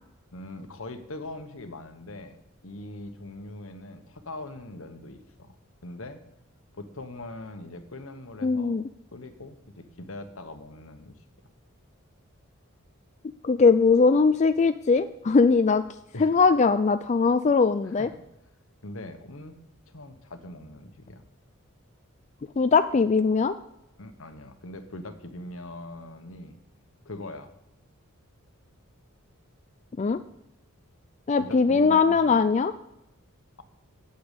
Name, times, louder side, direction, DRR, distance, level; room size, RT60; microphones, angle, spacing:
voice 1, 0.3-2.4 2.6-5.6 5.8-6.2 6.7-8.8 9.1-11.2 16.1-16.4 17.8-18.1 18.8-19.5 19.9-21.3 24.0-26.6 27.0-27.5 31.4-32.4, left 2 dB, 70° left, 8 dB, 1.2 m, -41 dB
voice 2, 8.4-8.8 13.4-15.8 16.2-18.1 22.6-23.5 30.0-30.2 31.3-32.7, left 4 dB, 35° left, 10 dB, 0.3 m, -20 dB
8.5 x 7.9 x 8.2 m, 0.85 s
head